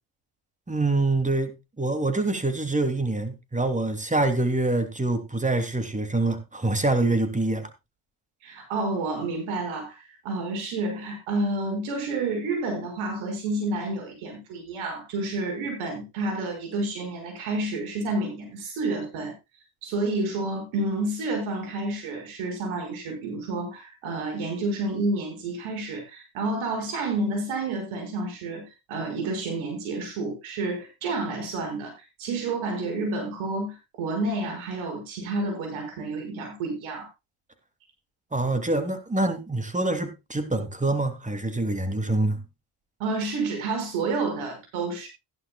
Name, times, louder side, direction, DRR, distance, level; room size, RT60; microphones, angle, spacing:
voice 1, 0.7-7.7 38.3-42.4, right 2 dB, 15° right, 3.0 m, -25 dB
voice 2, 8.4-19.3 19.8-31.9 32.2-37.1 43.0-45.1, right 2 dB, 85° right, 6.0 m, -30 dB
15.5 x 11.5 x 2.4 m
supercardioid pair, 65°, 47 cm